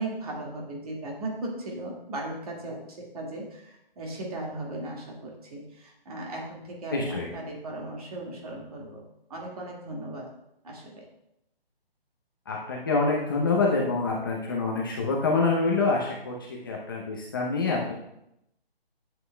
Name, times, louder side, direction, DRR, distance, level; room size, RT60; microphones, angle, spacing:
voice 1, 0.0-9.0 9.3-10.3 10.6-11.1, right 2 dB, 35° right, -1 dB, 1.9 m, -37 dB
voice 2, 6.9-7.3 12.5-16.3 16.6-17.9, left 3 dB, 20° left, -2 dB, 0.7 m, -26 dB
11.0 x 7.8 x 2.2 m, 0.81 s
hypercardioid pair, 165°, 31 cm